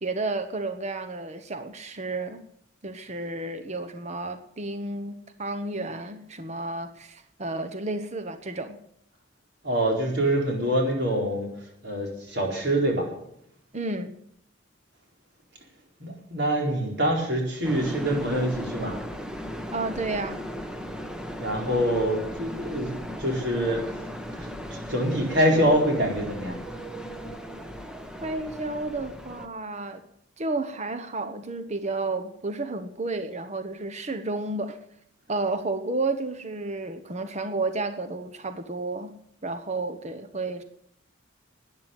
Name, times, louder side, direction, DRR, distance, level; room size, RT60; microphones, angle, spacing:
voice 1, 0.0-2.5 2.8-8.8 13.7-14.1 19.7-20.4 28.2-30.0 30.4-34.8 35.3-39.1 39.4-40.6, right 2 dB, 35° right, 9 dB, 1.0 m, -31 dB
voice 2, 9.6-11.5 11.8-13.1 16.0-19.0 21.4-23.9 24.7-26.6, right 1 dB, 60° right, 1 dB, 4.4 m, -25 dB
sound 1, 17.6-29.5, equal, 5° right, 1.2 m, -37 dB
12.5 x 9.5 x 9.1 m, 0.73 s
head